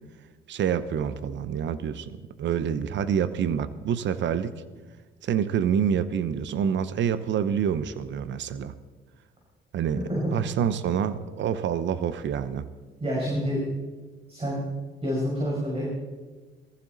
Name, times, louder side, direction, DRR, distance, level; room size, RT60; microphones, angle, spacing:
voice 1, 0.5-4.6 5.2-8.7 9.7-10.0 10.3-12.7, right 8 dB, 65° right, 14 dB, 0.9 m, -27 dB
voice 2, 10.0-10.3 13.0-13.6 14.3-14.6 15.0-15.9, equal, 30° right, -4 dB, 5.5 m, -28 dB
19.0 x 14.5 x 4.0 m, 1.3 s
cardioid pair, 90°, 20 cm